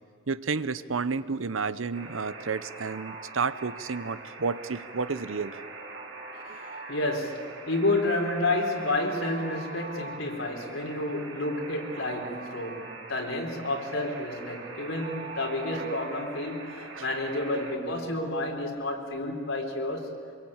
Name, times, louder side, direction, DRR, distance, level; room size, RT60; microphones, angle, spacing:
voice 1, 0.3-5.6 6.5-6.6 15.7-15.9 17.0-17.1, right 4 dB, 85° right, 14 dB, 0.8 m, -31 dB
Alarm, 1.9-17.8, right 3 dB, 65° right, 3.1 m, -42 dB
voice 2, 6.9-20.1, left 2 dB, 90° left, 1 dB, 4.0 m, -30 dB
24.5 x 23.0 x 8.9 m, 2.3 s
head